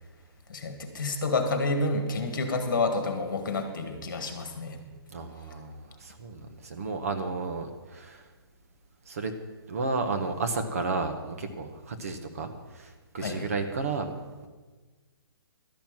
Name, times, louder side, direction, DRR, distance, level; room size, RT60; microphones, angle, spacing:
voice 1, 0.5-4.8 13.2-13.5, left 3 dB, 50° left, 5 dB, 1.8 m, -29 dB
voice 2, 5.1-8.2 9.1-9.3 9.7-14.1, right 3 dB, 35° right, 6 dB, 0.9 m, -32 dB
12.5 x 6.0 x 8.9 m, 1.4 s
hypercardioid pair, 180°, 13 cm